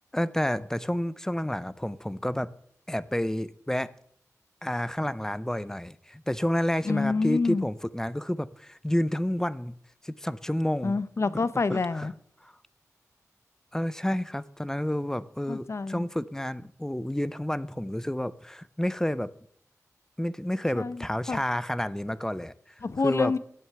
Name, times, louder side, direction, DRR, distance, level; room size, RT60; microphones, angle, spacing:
voice 1, 0.1-2.5 2.9-3.9 4.6-9.8 10.0-11.0 11.7-12.1 12.4-12.5 13.7-19.3 20.2-23.3, left 1 dB, 10° left, 0.5 m, -30 dB
voice 2, 6.9-7.7 10.8-12.1 15.5-16.1 20.7-21.0 21.3-21.4 22.8-23.4, left 4 dB, 55° left, 0.6 m, -27 dB
10.0 x 7.8 x 6.7 m
wide cardioid pair, 70°, 6 cm